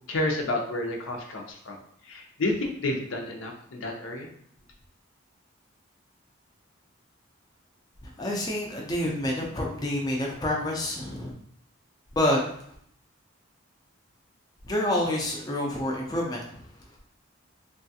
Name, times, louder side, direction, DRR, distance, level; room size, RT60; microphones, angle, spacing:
voice 1, 0.1-1.8 2.1-4.3, left 2 dB, 75° left, 1 dB, 0.6 m, -30 dB
voice 2, 8.0-11.3 12.2-12.7 14.7-16.6, left 1 dB, 20° left, -2 dB, 0.4 m, -28 dB
3.1 x 2.3 x 2.7 m, 0.66 s
head